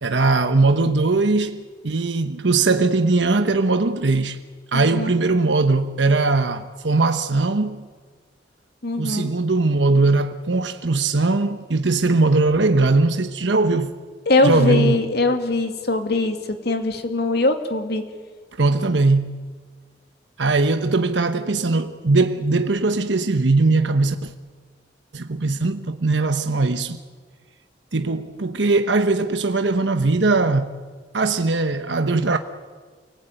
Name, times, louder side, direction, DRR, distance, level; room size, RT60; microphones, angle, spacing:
voice 1, 0.0-4.4 4.7-7.9 9.0-14.0 14.4-15.0 18.6-19.4 20.4-24.3 25.1-27.0 27.9-30.7 31.1-32.4, right 3 dB, 90° right, 1.1 m, -20 dB
voice 2, 4.7-5.1 8.8-9.3 14.3-18.0, left 2 dB, 65° left, 2.5 m, -21 dB
29.0 x 18.5 x 9.1 m
head